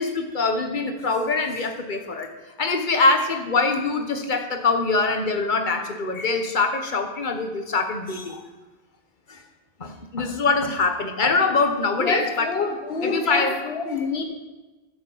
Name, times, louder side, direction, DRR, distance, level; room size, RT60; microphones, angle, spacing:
voice 1, 0.0-2.3 2.6-8.4 9.3-9.4 9.8-12.5 13.0-13.6 14.0-14.1, left 3 dB, 50° left, 5 dB, 1.3 m, -23 dB
voice 2, 12.0-14.2, left 4 dB, 80° left, 5 dB, 1.4 m, -26 dB
10.5 x 6.5 x 7.2 m, 1.2 s
omnidirectional pair, 1.0 m